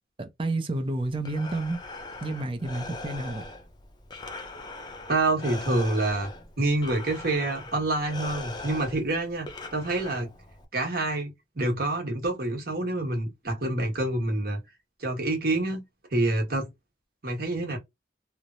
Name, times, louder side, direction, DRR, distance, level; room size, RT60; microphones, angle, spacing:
voice 1, 0.2-1.8 2.2-3.4, right 2 dB, 30° right, 0.6 m, -30 dB
Breathing, 1.0-10.6, left 2 dB, 25° left, 0.5 m, -41 dB
voice 2, 5.1-6.3 6.6-10.3 10.7-14.6 15.0-15.8 16.1-16.7 17.2-17.8, right 2 dB, 55° right, 1.3 m, -27 dB
3.2 x 2.0 x 2.6 m
head